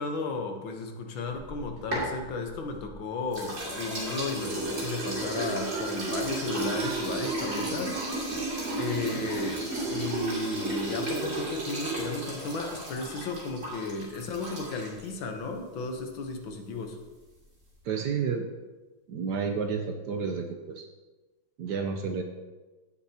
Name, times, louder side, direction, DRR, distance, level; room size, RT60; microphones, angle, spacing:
voice 1, 0.0-8.4 8.8-17.0, left 3 dB, 70° left, 4 dB, 1.8 m, -34 dB
sound 1, 1.3-2.9 3.3-15.1, right 2 dB, 35° right, 3.2 m, -33 dB
sound 2, 5.2-11.3, right 3 dB, 90° right, 2.2 m, -44 dB
voice 2, 17.8-18.5 19.1-20.9 21.6-22.2, right 6 dB, 65° right, 5 dB, 1.2 m, -30 dB
17.0 x 6.9 x 2.8 m, 1.2 s
omnidirectional pair, 2.3 m